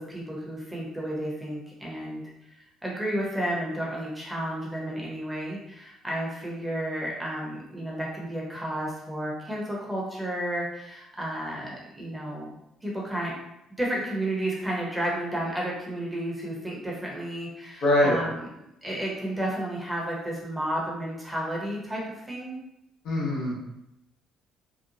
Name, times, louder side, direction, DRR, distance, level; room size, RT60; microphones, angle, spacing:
voice 1, 0.1-2.6 2.8-13.3 13.8-18.5 18.8-22.6, right 1 dB, 10° right, -4 dB, 0.9 m, -32 dB
voice 2, 17.8-18.1 23.0-23.7, left 1 dB, 80° left, -6 dB, 1.1 m, -23 dB
2.8 x 2.1 x 2.6 m, 0.84 s
supercardioid pair, 80°, 0 cm